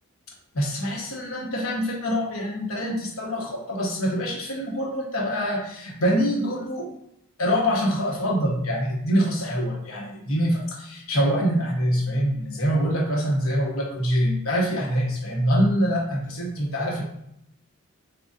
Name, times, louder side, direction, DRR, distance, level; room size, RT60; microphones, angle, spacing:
voice 1, 0.5-6.9 7.4-17.0, equal, 70° left, -1 dB, 1.1 m, -25 dB
6.3 x 2.4 x 2.5 m, 0.76 s
head